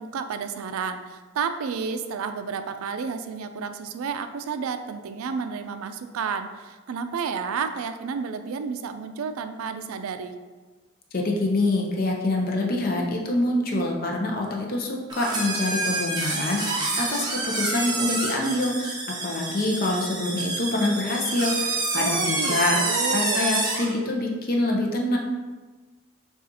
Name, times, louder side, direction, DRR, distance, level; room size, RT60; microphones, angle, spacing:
voice 1, 0.0-10.4 22.0-23.5, right 5 dB, 85° right, 9 dB, 0.3 m, -31 dB
voice 2, 11.1-22.7 23.1-25.2, left 2 dB, 45° left, 0 dB, 0.6 m, -26 dB
sound 1, 15.1-23.9, right 2 dB, 20° right, 0.7 m, -28 dB
6.5 x 2.4 x 2.7 m, 1.3 s
head